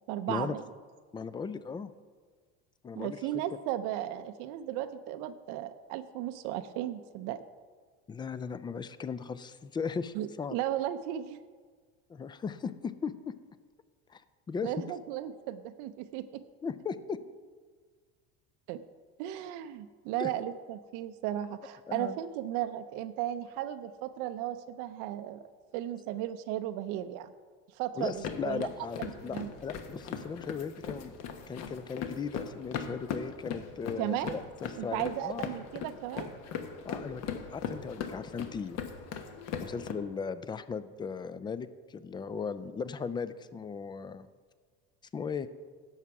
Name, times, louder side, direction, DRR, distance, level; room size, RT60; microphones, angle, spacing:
voice 1, 0.1-0.6 2.9-7.4 10.1-11.4 14.6-16.4 18.7-18.8 19.2-25.4 25.7-27.3 27.7-28.7 29.0-29.5 34.0-34.4 34.8-36.3, right 12 dB, 70° right, 9 dB, 0.6 m, -35 dB
voice 2, 1.1-1.9 2.8-3.2 8.1-10.6 12.1-13.4 14.1-14.2 14.5-14.7 16.6-17.2 20.2-20.3 21.9-22.2 27.9-31.1 31.5-35.5 36.8-38.8 39.6-44.3 45.1-45.5, left 5 dB, 15° left, 15 dB, 0.3 m, -37 dB
sound 1, 28.0-39.9, left 7 dB, 55° left, 1.2 m, -39 dB
11.0 x 7.3 x 4.7 m, 1.5 s
supercardioid pair, 115°, 31 cm